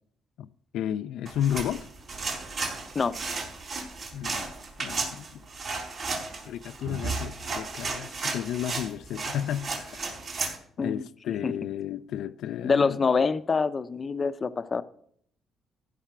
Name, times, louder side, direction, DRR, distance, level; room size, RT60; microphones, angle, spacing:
voice 1, 0.7-1.9 4.1-4.5 4.8-5.4 6.4-10.1 10.8-13.0, left 10 dB, 80° left, 0.4 m, -32 dB
sound 1, 1.3-10.6, right 4 dB, 55° right, 4.1 m, -34 dB
voice 2, 12.6-14.8, left 5 dB, 35° left, 0.6 m, -25 dB
14.5 x 5.7 x 5.8 m
cardioid pair, 100°, 0 cm